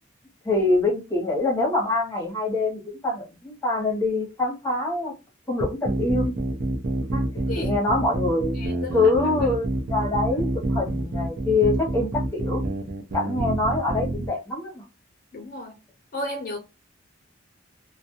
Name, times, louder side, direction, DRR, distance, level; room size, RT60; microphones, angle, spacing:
voice 1, 0.4-5.1 5.5-6.3 7.1-7.2 7.6-8.6 8.9-12.6 13.1-14.8, left 2 dB, 15° left, 0.9 m, -24 dB
sound 1, 5.6-14.3, right 1 dB, 55° right, 0.5 m, -27 dB
voice 2, 7.3-7.7 8.5-9.1 15.3-15.7 16.1-16.6, left 1 dB, 50° left, 0.5 m, -33 dB
2.4 x 2.1 x 2.7 m
head